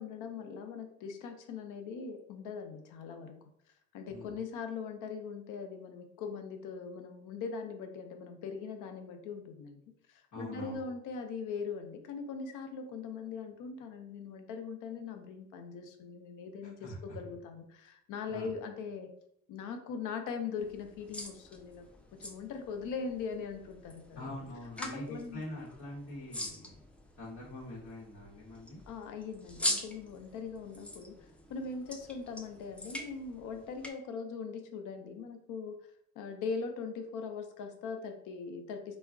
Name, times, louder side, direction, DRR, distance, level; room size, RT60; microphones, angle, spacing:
voice 1, 0.0-3.4 3.9-9.8 10.1-19.1 19.5-21.9 22.2-24.4 24.8-25.4 28.9-35.8 36.2-39.0, left 5 dB, 90° left, 6 dB, 0.5 m, -41 dB
voice 2, 10.3-10.8 16.6-17.2 18.3-18.5 24.2-26.8 27.2-28.8, left 1 dB, 65° left, -8 dB, 1.0 m, -44 dB
sound 1, 20.6-33.9, equal, 5° left, 0.3 m, -43 dB
2.2 x 2.0 x 3.5 m, 0.74 s
cardioid pair, 90°, 30 cm